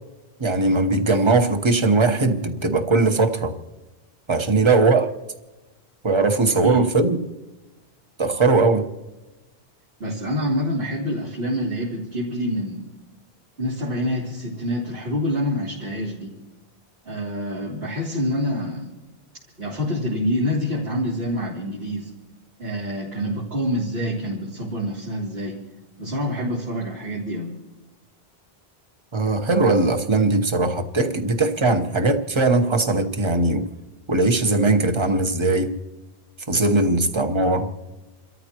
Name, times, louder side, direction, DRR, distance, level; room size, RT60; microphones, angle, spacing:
voice 1, 0.4-3.5 4.3-5.1 6.0-7.2 8.2-8.9 29.1-33.7 34.1-35.8 36.5-37.7, right 3 dB, 30° right, 6 dB, 1.1 m, -20 dB
voice 2, 6.5-6.9 10.0-12.9 13.6-16.4 17.0-18.9 19.6-22.1 22.6-25.6 26.0-27.5, equal, 70° right, -7 dB, 3.4 m, -26 dB
29.0 x 13.5 x 3.0 m, 1.1 s
omnidirectional pair, 1.1 m